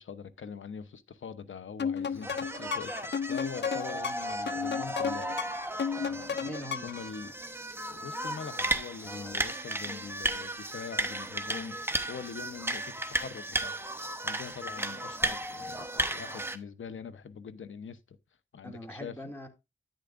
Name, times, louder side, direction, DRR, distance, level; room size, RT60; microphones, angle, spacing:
voice 1, 0.0-5.3 6.0-6.4 6.8-7.3 7.9-18.2 18.5-19.1, left 6 dB, 75° left, 0.9 m, -43 dB
sound 1, 1.8-7.1, left 7 dB, 60° left, 0.5 m, -34 dB
sound 2, 2.2-16.6, right 1 dB, 10° right, 0.9 m, -35 dB
voice 2, 6.4-6.9 9.0-9.5 18.6-19.5, equal, 10° left, 2.4 m, -42 dB
10.5 x 9.1 x 2.5 m
wide cardioid pair, 80°, 20 cm